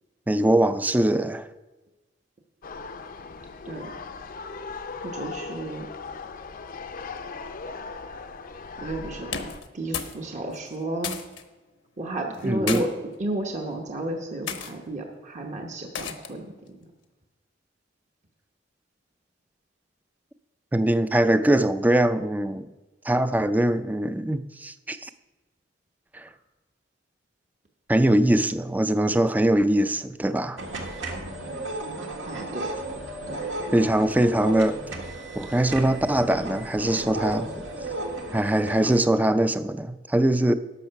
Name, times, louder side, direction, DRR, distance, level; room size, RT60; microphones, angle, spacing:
voice 1, 0.3-1.5 12.4-12.9 20.7-22.7 23.1-25.1 26.1-26.3 27.9-30.6 33.7-34.8 35.4-37.5 38.3-40.5, right 1 dB, 10° right, 12 dB, 0.4 m, -22 dB
sound 1, 2.6-9.6, left 4 dB, 50° left, 0.5 m, -38 dB
voice 2, 5.0-5.9 8.8-11.2 12.0-12.9 13.2-16.9 32.2-32.8 33.3-33.4, right 2 dB, 40° right, 2 dB, 1.0 m, -33 dB
sound 2, 9.2-10.2 10.5-11.4 12.3-12.8 13.6-13.9 14.5-14.7 15.9-16.4, left 7 dB, 85° left, 1.0 m, -33 dB
sound 3, 30.6-39.0, right 2 dB, 85° right, 1.6 m, -34 dB
12.0 x 6.5 x 5.7 m, 1.2 s
head